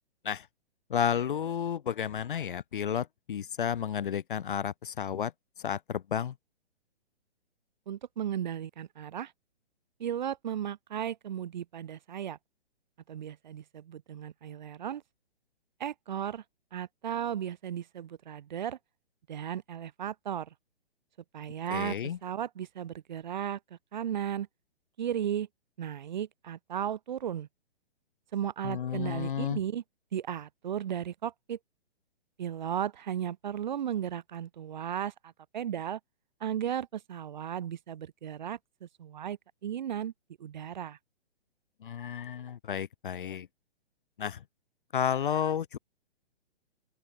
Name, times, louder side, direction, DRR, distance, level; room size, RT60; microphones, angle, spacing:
voice 1, 0.9-5.3 5.6-6.3 21.7-22.2 28.6-29.6 41.8-43.5 44.2-44.4 44.9-45.8, left 8 dB, 55° left, 0.5 m, -32 dB
voice 2, 7.9-9.3 10.0-12.4 13.1-15.0 15.8-16.4 16.7-18.8 19.3-20.5 21.3-23.6 23.9-24.5 25.0-25.5 25.8-27.5 28.3-29.8 30.1-31.6 32.4-36.0 36.4-40.1 40.4-41.0, right 9 dB, 45° right, 0.9 m, -35 dB
open air
figure-of-eight pair, 125°, 31 cm